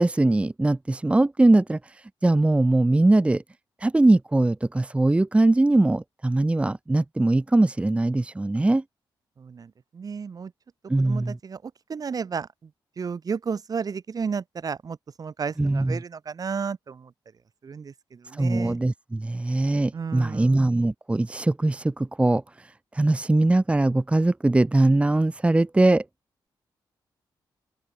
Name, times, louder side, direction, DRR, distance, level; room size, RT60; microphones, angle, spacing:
voice 1, 0.0-3.4 3.8-8.8 10.9-11.4 15.6-16.0 18.3-26.0, right 2 dB, 15° right, 1.0 m, -21 dB
voice 2, 9.4-10.5 11.0-12.7 13.0-17.1 17.6-18.8 19.9-20.6, right 6 dB, 45° right, 7.7 m, -33 dB
open air
cardioid pair, 110°, 8 cm